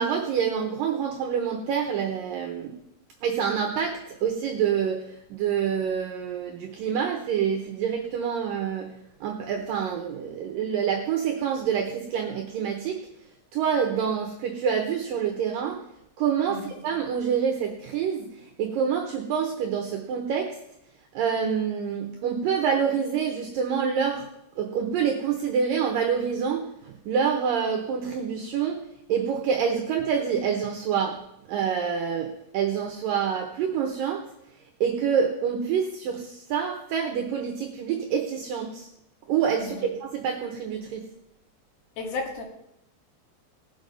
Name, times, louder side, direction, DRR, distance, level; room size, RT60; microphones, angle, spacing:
voice 1, 0.0-2.8 3.2-8.9 9.2-13.0 13.5-15.8 16.2-20.6 21.1-24.3 24.6-28.8 29.1-31.2 31.5-34.3 34.8-38.9 39.3-41.1, right 7 dB, 75° right, 2 dB, 2.1 m, -27 dB
voice 2, 42.0-42.4, left 3 dB, 65° left, 2 dB, 3.7 m, -32 dB
18.0 x 7.1 x 5.3 m, 0.80 s
omnidirectional pair, 5.1 m